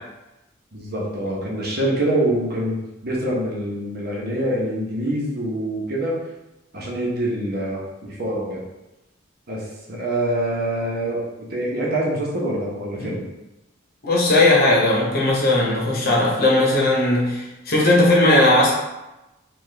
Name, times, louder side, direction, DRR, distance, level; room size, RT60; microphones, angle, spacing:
voice 1, 0.7-6.2 6.7-8.6 9.5-11.2 11.5-13.2, right 1 dB, 50° right, -4 dB, 1.0 m, -25 dB
voice 2, 14.0-18.7, left 2 dB, 50° left, -3 dB, 0.9 m, -17 dB
4.3 x 2.5 x 3.3 m, 0.98 s
head